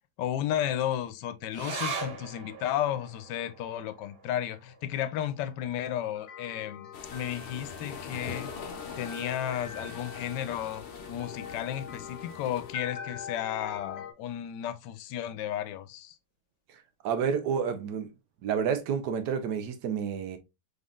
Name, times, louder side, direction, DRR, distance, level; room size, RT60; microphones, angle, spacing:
voice 1, 0.2-8.5 9.0-16.2, left 11 dB, 90° left, 1.2 m, -33 dB
sound 1, 1.5-8.3 8.6-8.7 9.0-9.7 10.3-10.4, right 4 dB, 55° right, 0.7 m, -42 dB
sound 2, 5.5-14.1, left 7 dB, 45° left, 1.0 m, -44 dB
sound 3, 6.9-12.7, left 4 dB, 65° left, 0.5 m, -43 dB
voice 2, 17.0-18.1 18.4-20.4, right 7 dB, 80° right, 1.3 m, -29 dB
3.8 x 3.6 x 2.3 m
omnidirectional pair, 1.8 m